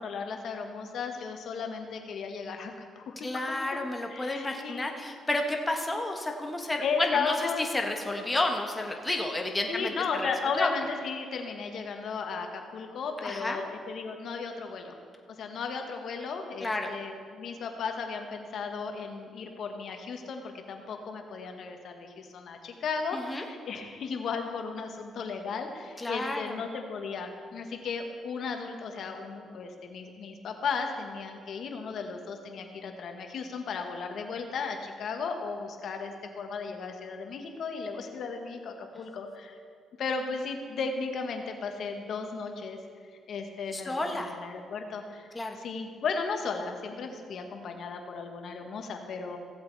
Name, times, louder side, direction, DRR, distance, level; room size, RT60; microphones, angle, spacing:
voice 1, 0.0-3.6 4.1-5.0 6.8-7.6 9.7-15.0 15.3-39.6 40.0-42.8 43.3-49.4, left 5 dB, 65° left, 4 dB, 1.3 m, -35 dB
voice 2, 3.2-9.9 10.2-10.7 13.2-13.6 16.6-16.9 23.1-23.4 26.0-26.6 43.7-44.4 45.3-45.6, left 2 dB, 15° left, 2 dB, 1.4 m, -31 dB
16.0 x 7.8 x 4.0 m, 2.1 s
cardioid pair, 90°, 0 cm